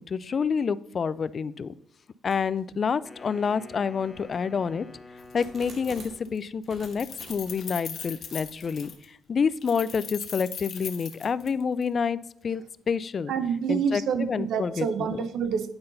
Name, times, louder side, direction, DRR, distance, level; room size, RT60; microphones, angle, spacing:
voice 1, 0.0-1.7 2.2-4.9 5.3-12.2 12.4-13.3 13.7-14.0 14.3-14.9 15.1-15.2, left 6 dB, 45° left, 18 dB, 0.3 m, -28 dB
sound 1, 2.3-2.6 3.2-3.3 4.0-6.3 6.7-7.8 8.3-8.9, right 2 dB, 50° right, 1.8 m, -49 dB
Wind instrument woodwind instrument, 3.0-6.5, left 3 dB, 20° left, 1.0 m, -48 dB
Keys jangling, 5.2-5.3 5.6-6.4 6.6-9.0 9.6-11.9, left 7 dB, 60° left, 1.0 m, -39 dB
voice 2, 13.3-15.7, right 6 dB, 75° right, 11 dB, 0.7 m, -27 dB
8.7 x 5.6 x 3.9 m, 0.72 s
cardioid pair, 90°, 0 cm